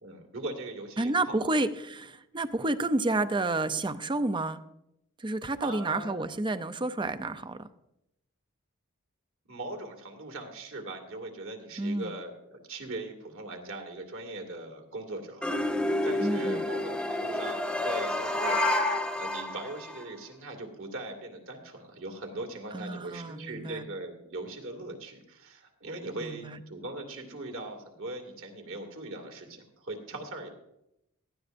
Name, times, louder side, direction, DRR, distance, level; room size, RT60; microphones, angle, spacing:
voice 1, 0.0-1.5 5.6-6.2 9.5-15.5 16.0-18.6 19.1-30.5, right 2 dB, 60° right, 3 dB, 2.3 m, -40 dB
voice 2, 1.0-4.6 5.2-7.7 11.8-12.2 16.2-16.7 22.7-23.9 26.2-26.6, right 2 dB, 20° right, 11 dB, 0.6 m, -30 dB
sound 1, 15.4-20.0, left 1 dB, 5° left, 1.0 m, -30 dB
Meow, 18.2-19.1, left 4 dB, 40° left, 0.9 m, -30 dB
18.0 x 13.0 x 2.6 m, 0.84 s
head